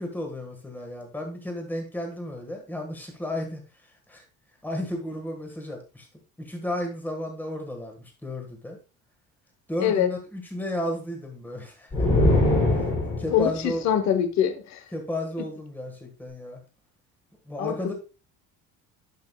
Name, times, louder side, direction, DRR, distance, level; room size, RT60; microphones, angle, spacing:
voice 1, 0.0-4.2 4.6-6.1 6.4-8.8 9.7-12.0 13.2-13.8 14.9-16.6 17.5-17.9, left 1 dB, 5° left, 1.4 m, -33 dB
voice 2, 9.8-10.1 13.3-14.8 17.6-17.9, left 9 dB, 55° left, 1.0 m, -24 dB
sound 1, 11.9-13.5, left 1 dB, 20° left, 2.7 m, -21 dB
11.0 x 5.3 x 2.2 m
cardioid pair, 170°, 33 cm